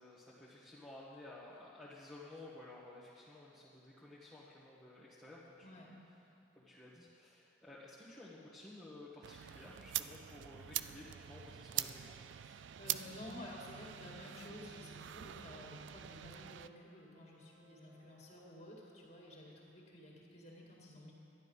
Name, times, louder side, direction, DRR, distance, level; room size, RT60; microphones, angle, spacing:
voice 1, 0.0-5.8 6.5-12.2, left 2 dB, 5° left, -10 dB, 1.2 m, -54 dB
voice 2, 5.6-6.0 12.4-21.1, left 1 dB, 35° left, -2 dB, 2.1 m, -52 dB
sound 1, 9.2-16.7, right 12 dB, 70° right, 0.3 m, -44 dB
sound 2, 12.9-19.7, right 2 dB, 25° right, 1.4 m, -70 dB
12.0 x 10.5 x 5.5 m, 2.7 s
head